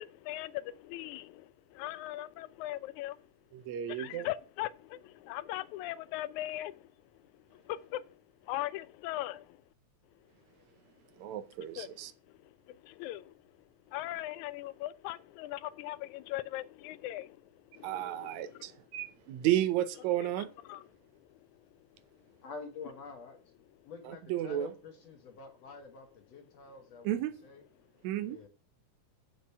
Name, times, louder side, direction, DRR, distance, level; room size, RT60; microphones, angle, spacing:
voice 1, 0.0-3.3 3.6-9.6 11.6-13.4 13.9-18.8 20.2-22.0 22.3-22.4 23.8-23.9, left 15 dB, 80° left, 1.8 m, -41 dB
voice 2, 3.5-4.3 11.2-12.1 17.8-20.5 24.1-24.7 27.1-27.4 28.0-28.4, right 12 dB, 70° right, 1.9 m, -32 dB
voice 3, 22.4-23.5 23.9-27.6 28.2-28.5, left 4 dB, 60° left, 2.2 m, -48 dB
8.5 x 5.9 x 6.6 m
omnidirectional pair, 3.7 m